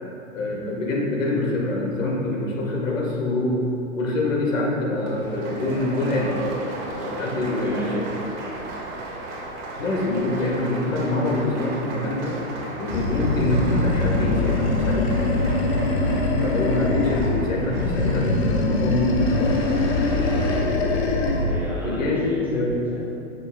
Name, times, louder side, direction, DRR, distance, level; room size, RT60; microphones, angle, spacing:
voice 1, 0.3-3.7 3.9-6.4 7.0-8.1 9.8-12.4 12.8-15.1 16.4-19.7 21.8-22.7, left 2 dB, 65° left, -2 dB, 1.5 m, -25 dB
Applause, 5.0-18.3, right 2 dB, 35° right, 1.6 m, -36 dB
sound 1, 5.1-20.6, equal, 10° left, 1.4 m, -39 dB
voice 2, 6.8-7.9 21.2-22.6 22.9-23.1, equal, 5° right, -7 dB, 1.4 m, -35 dB
Animal, 12.9-17.4 17.7-21.6, left 2 dB, 50° left, 0.9 m, -22 dB
9.8 x 6.3 x 2.3 m, 2.7 s
figure-of-eight pair, 110°, 42 cm